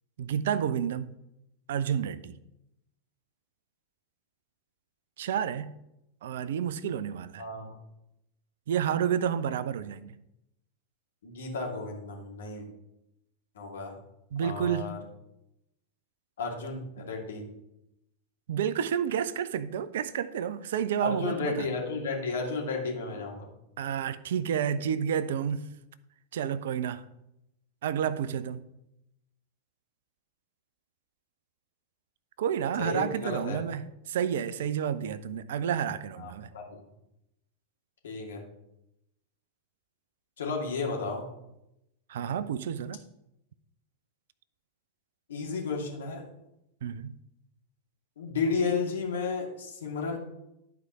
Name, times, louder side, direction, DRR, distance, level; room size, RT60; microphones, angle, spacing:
voice 1, 0.2-1.2 1.7-2.4 5.2-5.7 6.2-7.4 8.7-10.1 14.3-14.9 18.5-21.7 23.8-25.7 26.3-27.0 27.8-28.6 32.4-36.5 42.1-43.0 46.8-47.1, right 8 dB, 60° right, 0.5 m, -30 dB
voice 2, 7.4-7.7 11.2-12.7 13.5-14.0 14.4-15.0 16.4-17.5 21.0-23.5 32.8-33.6 36.2-36.8 38.0-38.4 40.4-41.3 45.3-46.3 48.2-50.2, left 4 dB, 65° left, 2.5 m, -33 dB
11.5 x 4.7 x 5.5 m
figure-of-eight pair, 90°, 0 cm